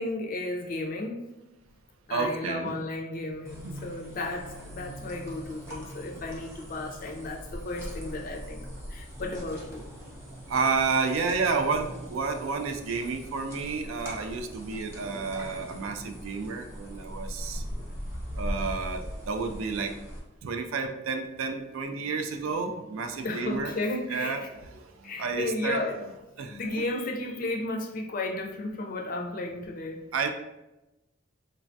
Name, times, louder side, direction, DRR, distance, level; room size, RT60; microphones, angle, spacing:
voice 1, 0.0-1.3 2.1-9.8 23.2-24.5 25.0-26.1 26.5-30.0, left 2 dB, 45° left, 1 dB, 0.4 m, -34 dB
voice 2, 2.1-2.8 3.6-3.8 10.5-17.6 18.4-20.0 20.4-23.8 24.1-25.8 26.4-26.8 30.1-30.3, right 4 dB, 80° right, 6 dB, 0.3 m, -31 dB
sound 1, 3.4-20.2, equal, 15° right, 0.6 m, -40 dB
3.2 x 2.2 x 2.5 m, 0.97 s
head